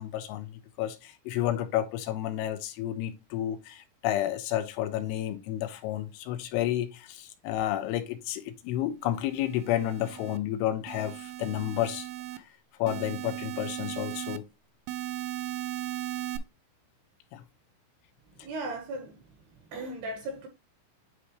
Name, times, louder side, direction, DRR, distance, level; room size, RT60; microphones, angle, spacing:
voice 1, 0.0-12.1 12.3-12.5 12.8-14.4 17.3-17.4, left 12 dB, 85° left, 3.2 m, -31 dB
sound 1, 9.3-10.4 10.9-12.4 12.9-14.4 14.9-16.4, right 13 dB, 85° right, 3.2 m, -37 dB
voice 2, 18.4-19.2 19.7-20.5, right 2 dB, 70° right, 2.7 m, -36 dB
9.7 x 3.4 x 3.0 m
omnidirectional pair, 5.8 m